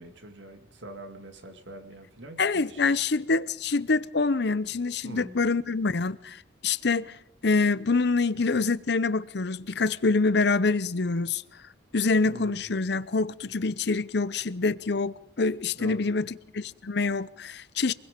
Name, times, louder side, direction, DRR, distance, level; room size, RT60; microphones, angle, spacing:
voice 1, 0.0-3.0 5.0-5.4 12.2-12.7 15.7-16.2, right 1 dB, 75° right, 2.2 m, -44 dB
voice 2, 2.4-7.2 7.4-11.4 11.9-17.9, left 3 dB, 60° left, 0.7 m, -26 dB
26.0 x 21.0 x 5.2 m
head